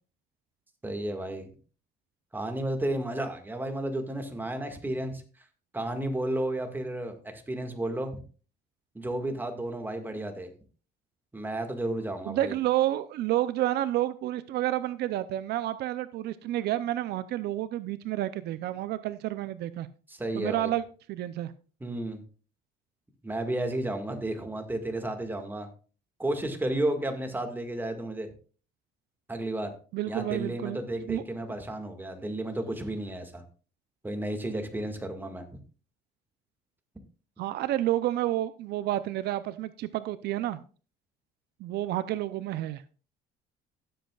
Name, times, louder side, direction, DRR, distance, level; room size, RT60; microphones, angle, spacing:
voice 1, 0.8-1.5 2.3-5.2 5.7-8.2 9.0-10.5 11.3-12.6 20.1-20.7 21.8-22.2 23.2-25.7 26.2-28.3 29.3-29.7 30.1-33.4 34.0-35.4, right 1 dB, 10° right, 1.8 m, -32 dB
voice 2, 12.3-19.9 20.3-20.8 21.1-21.5 29.9-30.8 31.1-31.2 37.4-40.6 41.6-42.8, right 14 dB, 75° right, 0.6 m, -30 dB
15.5 x 7.8 x 2.4 m
cardioid pair, 110°, 17 cm